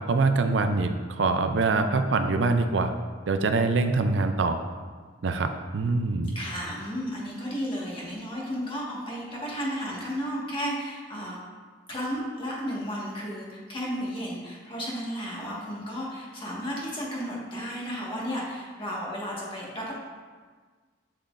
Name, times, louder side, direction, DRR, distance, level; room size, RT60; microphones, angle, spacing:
voice 1, 0.0-2.9 3.3-4.6 5.2-6.4, right 3 dB, 75° right, 7 dB, 0.5 m, -24 dB
voice 2, 6.4-11.4 11.9-19.9, equal, 30° left, -5 dB, 1.7 m, -33 dB
7.4 x 7.1 x 2.6 m, 1.5 s
head